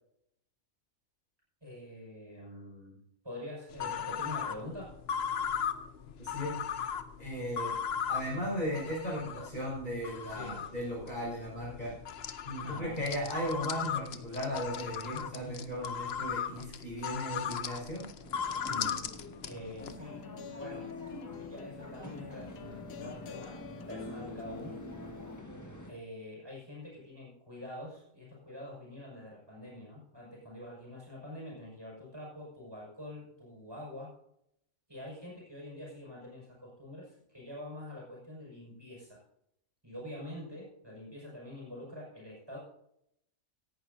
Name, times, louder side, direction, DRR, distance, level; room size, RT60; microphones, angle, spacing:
voice 1, 1.6-4.9 10.3-10.6 12.6-13.0 18.7-19.0 19.4-20.2 20.6-20.9 21.3-24.7 25.9-34.1 34.9-39.2 39.8-42.6, left 1 dB, 15° right, -3 dB, 5.9 m, -45 dB
sound 1, 3.7-20.0, left 7 dB, 55° left, 0.9 m, -38 dB
voice 2, 6.2-6.6 7.2-7.7 8.1-11.9 12.4-18.1, equal, 35° left, -4 dB, 5.8 m, -36 dB
sound 2, 18.2-25.9, equal, 15° left, 1.5 m, -48 dB
sound 3, 19.8-25.4, left 6 dB, 90° left, 1.3 m, -46 dB
17.5 x 11.0 x 2.7 m, 0.75 s
omnidirectional pair, 1.4 m